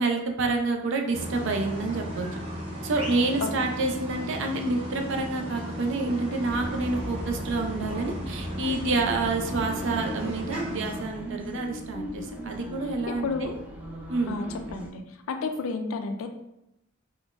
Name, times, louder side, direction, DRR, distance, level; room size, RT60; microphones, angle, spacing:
voice 1, 0.0-2.3 2.8-13.5 14.1-14.3 14.7-14.9, right 3 dB, 65° right, 3 dB, 0.4 m, -28 dB
sound 1, 1.1-11.0, equal, 30° right, 0.7 m, -36 dB
sound 2, 6.5-14.9, equal, 10° right, 0.4 m, -38 dB
voice 2, 13.1-13.5 14.3-14.5 14.7-16.3, left 4 dB, 80° left, 6 dB, 0.4 m, -31 dB
3.7 x 2.1 x 2.4 m, 0.85 s
head